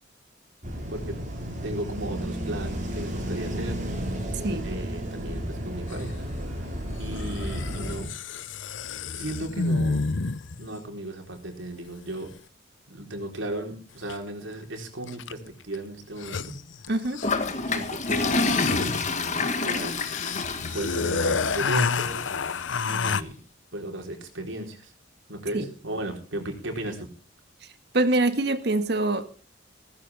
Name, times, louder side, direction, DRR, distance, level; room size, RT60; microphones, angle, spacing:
sound 1, 0.6-8.1, equal, 45° right, 5.8 m, -32 dB
voice 1, 1.6-3.8 4.6-6.7 7.0-8.1 9.1-10.1 10.6-12.3 12.9-16.5 17.6-20.0 20.7-22.3 22.8-23.4 23.7-24.9 25.3-27.1, right 1 dB, 85° right, 4.3 m, -35 dB
voice 2, 4.4-4.7 16.9-17.2 25.5-25.7 27.9-29.3, right 2 dB, 60° right, 1.7 m, -24 dB
sound 2, 5.9-6.0 7.1-10.7 14.1-14.2 15.1-15.5 15.7-15.8 16.0-17.5 18.0-23.2, left 4 dB, 80° left, 0.8 m, -29 dB
Toilet flush, 17.2-22.3, left 3 dB, 40° left, 2.0 m, -28 dB
16.5 x 15.0 x 3.6 m
head